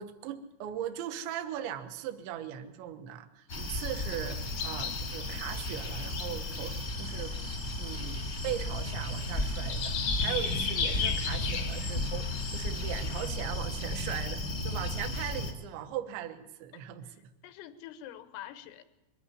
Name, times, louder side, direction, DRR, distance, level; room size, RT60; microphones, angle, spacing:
voice 1, 0.0-7.3 7.8-17.1, right 10 dB, 75° right, 7 dB, 3.1 m, -39 dB
sound 1, 3.5-13.3, left 6 dB, 70° left, 1.6 m, -38 dB
sound 2, 3.5-15.5, left 1 dB, 40° left, 0.9 m, -34 dB
voice 2, 16.7-18.8, left 12 dB, 90° left, 11 dB, 3.7 m, -47 dB
22.5 x 14.0 x 9.9 m, 1.0 s
omnidirectional pair, 5.8 m